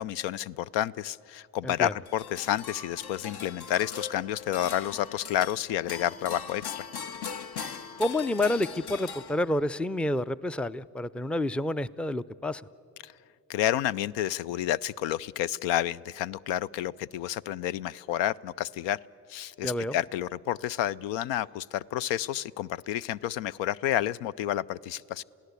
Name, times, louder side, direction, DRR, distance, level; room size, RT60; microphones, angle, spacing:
voice 1, 0.0-6.8 13.0-13.1 13.5-19.0 19.3-25.2, left 12 dB, 80° left, 19 dB, 0.5 m, -30 dB
sound 1, 2.0-9.7, left 6 dB, 60° left, 1.1 m, -40 dB
voice 2, 8.0-12.6 19.6-20.0, left 1 dB, 5° left, 17 dB, 0.4 m, -29 dB
28.0 x 16.5 x 8.2 m, 2.7 s
supercardioid pair, 50°, 43 cm